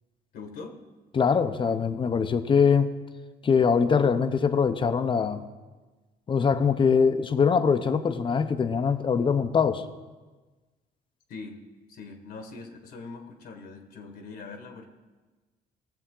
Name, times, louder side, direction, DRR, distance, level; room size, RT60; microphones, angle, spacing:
voice 1, 0.3-0.8 11.3-11.6 11.9-14.8, left 4 dB, 65° left, 5 dB, 1.4 m, -42 dB
voice 2, 1.1-2.9 3.4-5.4 6.3-9.8, left 6 dB, 30° left, 10 dB, 0.7 m, -23 dB
18.0 x 7.2 x 3.8 m, 1.3 s
cardioid pair, 110°, 17 cm